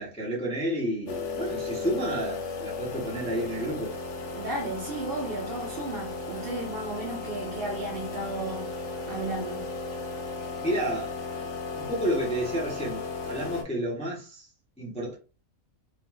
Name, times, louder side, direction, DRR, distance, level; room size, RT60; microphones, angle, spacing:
voice 1, 0.0-3.9 10.6-14.5 14.8-15.1, right 1 dB, 5° left, 0.5 m, -31 dB
sound 1, 1.1-13.6, left 3 dB, 65° left, 0.8 m, -35 dB
voice 2, 4.3-8.7 9.1-9.6, right 2 dB, 50° right, 0.9 m, -34 dB
3.0 x 2.5 x 2.2 m
omnidirectional pair, 1.5 m